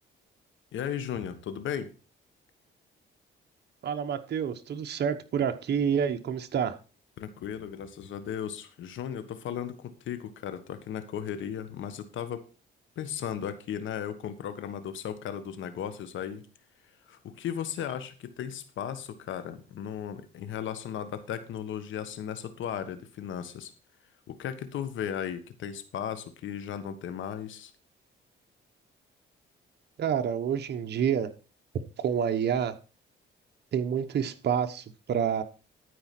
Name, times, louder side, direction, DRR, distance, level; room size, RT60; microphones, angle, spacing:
voice 1, 0.7-1.9 7.2-12.4 12.9-16.5 17.1-23.7 24.3-27.7, left 9 dB, 75° left, 11 dB, 1.5 m, -36 dB
voice 2, 3.8-6.8 30.0-31.3 32.0-32.7 33.7-35.4, right 8 dB, 55° right, 7 dB, 1.1 m, -28 dB
13.0 x 5.0 x 6.0 m, 0.35 s
cardioid pair, 90°, 20 cm